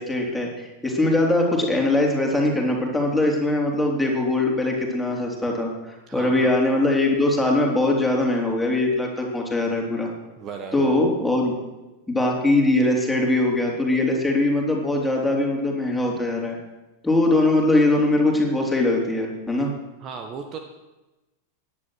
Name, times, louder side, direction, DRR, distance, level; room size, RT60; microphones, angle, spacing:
voice 1, 0.0-10.1 10.7-11.5 12.1-16.6 17.0-19.7, left 2 dB, 5° left, -1 dB, 3.7 m, -21 dB
voice 2, 6.1-6.6 10.4-10.9 20.0-20.6, right 5 dB, 35° right, 6 dB, 1.4 m, -36 dB
17.0 x 11.0 x 6.5 m, 1.1 s
figure-of-eight pair, 90°, 0 cm